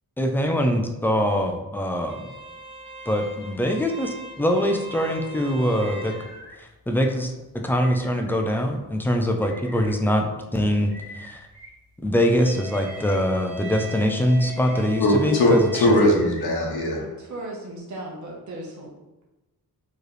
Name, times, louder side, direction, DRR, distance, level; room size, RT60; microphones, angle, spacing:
voice 1, 0.2-2.3 3.1-6.2 6.6-11.4 12.0-15.9, equal, 5° left, 3 dB, 0.3 m, -23 dB
sound 1, 2.1-15.9, right 3 dB, 85° right, 1.3 m, -41 dB
sound 2, 5.8-6.6 7.7-8.4 9.4-9.9 10.9-11.7 12.7-13.2 14.2-14.8 15.9-16.4, left 1 dB, 35° left, 1.2 m, -45 dB
voice 2, 15.0-17.0, left 1 dB, 70° left, -1 dB, 0.9 m, -19 dB
voice 3, 17.0-18.9, right 1 dB, 50° right, -2 dB, 0.9 m, -36 dB
4.6 x 3.1 x 3.2 m, 1.0 s
wide cardioid pair, 155°, 38 cm